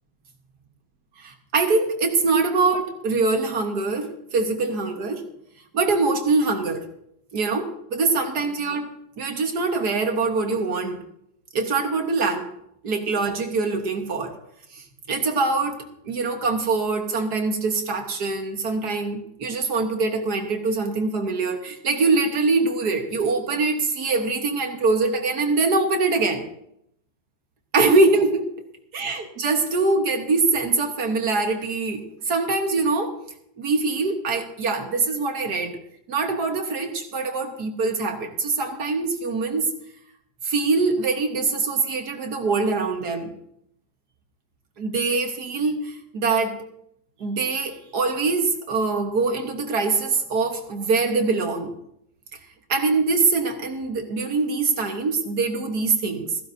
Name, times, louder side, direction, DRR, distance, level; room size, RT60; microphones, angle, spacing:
voice 1, 1.2-5.2 5.7-6.9 7.3-8.9 9.2-11.0 11.5-12.5 12.8-14.3 14.7-15.8 16.1-26.5 27.7-28.5 28.9-33.1 33.6-35.8 36.1-39.7 40.4-43.3 44.8-46.6 47.2-51.7 52.7-56.3, right 3 dB, 60° right, 3 dB, 1.9 m, -23 dB
15.5 x 15.0 x 2.7 m, 0.75 s
omnidirectional pair, 2.0 m